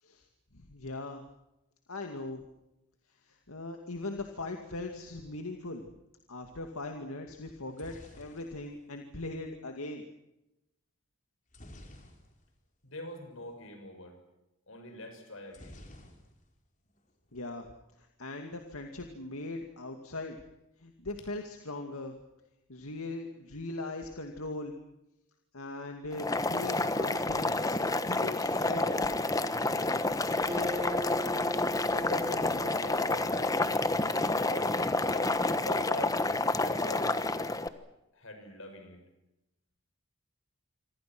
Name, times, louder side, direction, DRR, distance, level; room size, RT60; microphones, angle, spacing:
voice 1, 0.5-1.2 1.9-2.4 3.2-5.9 6.3-10.1 17.3-17.7 18.0-20.4 20.8-22.2 22.7-24.8 25.5-28.9, left 2 dB, 90° left, 4 dB, 2.3 m, -40 dB
sound 1, 7.5-9.6 11.5-12.7 13.0-13.1 13.3-13.6 15.5-16.7 17.0-17.6, left 1 dB, 35° left, 4.4 m, -52 dB
voice 2, 12.8-14.2 14.7-15.8 31.9-36.2 36.6-37.1 38.1-39.0, left 1 dB, 70° left, 7 dB, 6.4 m, -43 dB
Boiling, 26.1-37.7, left 2 dB, 15° left, 1.2 m, -29 dB
Acoustic guitar, 30.5-34.0, left 1 dB, 15° right, 5.3 m, -40 dB
27.0 x 26.0 x 6.2 m, 0.89 s
head